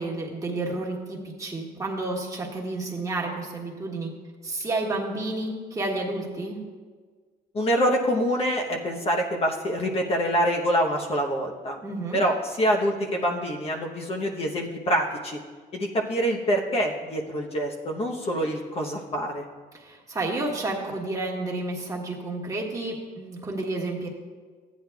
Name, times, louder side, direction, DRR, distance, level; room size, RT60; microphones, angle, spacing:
voice 1, 0.0-4.1 4.4-6.6 11.8-12.2 19.7-24.1, right 2 dB, 20° right, -2 dB, 1.5 m, -31 dB
voice 2, 7.5-11.8 12.1-15.4 15.7-19.4, equal, 35° left, 1 dB, 0.9 m, -25 dB
13.5 x 9.3 x 2.3 m, 1.5 s
cardioid pair, 110°, 17 cm